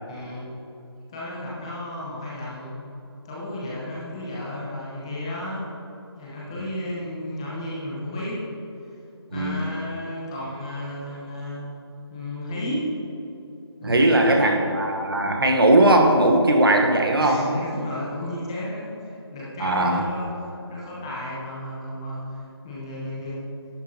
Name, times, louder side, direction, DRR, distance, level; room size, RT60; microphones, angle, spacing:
voice 1, 0.1-0.5 1.1-2.8 3.2-5.8 6.1-8.4 9.3-11.7 12.1-12.9 13.8-14.6 17.2-23.4, left 1 dB, 10° left, -7 dB, 0.9 m, -33 dB
voice 2, 9.3-9.6 13.8-17.4 19.6-20.0, right 1 dB, 55° right, 2 dB, 1.2 m, -19 dB
11.5 x 8.5 x 2.9 m, 2.9 s
figure-of-eight pair, 170°, 14 cm